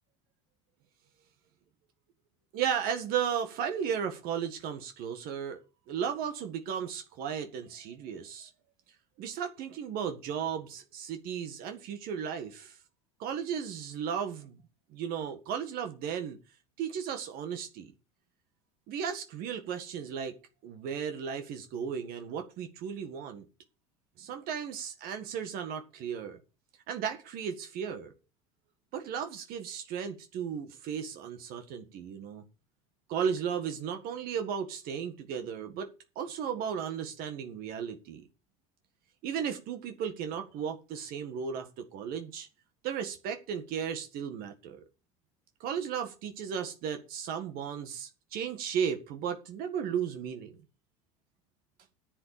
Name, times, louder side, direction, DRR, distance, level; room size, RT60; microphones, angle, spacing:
voice 1, 2.5-5.6 5.9-8.5 9.2-12.8 13.2-14.6 14.9-16.4 16.8-17.9 18.9-20.4 20.6-23.5 24.2-26.4 26.9-28.1 28.9-32.4 33.1-35.9 36.2-38.3 39.2-42.5 42.8-44.8 45.6-50.5, right 7 dB, 60° right, 1.8 m, -35 dB
9.7 x 7.7 x 6.8 m
hypercardioid pair, 85°, 18 cm